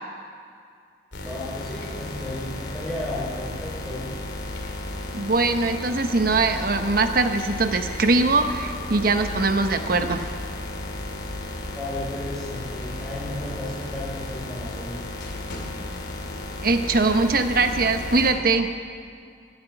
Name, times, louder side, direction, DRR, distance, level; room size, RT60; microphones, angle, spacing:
sound 1, 1.1-18.3, left 2 dB, 75° left, 2.6 m, -34 dB
voice 1, 1.2-4.1 11.7-15.0, left 1 dB, ahead, -6 dB, 4.9 m, -34 dB
voice 2, 5.1-10.3 16.6-18.7, right 3 dB, 50° right, 7 dB, 1.0 m, -22 dB
16.0 x 10.5 x 8.1 m, 2.2 s
head